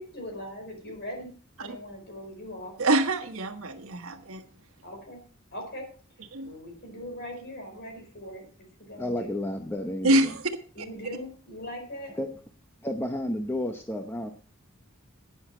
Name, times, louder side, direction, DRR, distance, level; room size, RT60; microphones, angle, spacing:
voice 1, 0.0-2.8 4.8-5.2 5.5-5.8 6.4-9.4 10.7-12.2, equal, 55° left, 3 dB, 4.7 m, -40 dB
voice 2, 2.8-4.4 6.3-6.5 10.0-10.4, right 2 dB, 85° right, 8 dB, 1.3 m, -25 dB
voice 3, 9.0-10.4 12.2-12.3 12.8-14.3, left 1 dB, 10° left, 4 dB, 0.8 m, -31 dB
11.5 x 9.6 x 4.3 m, 0.40 s
head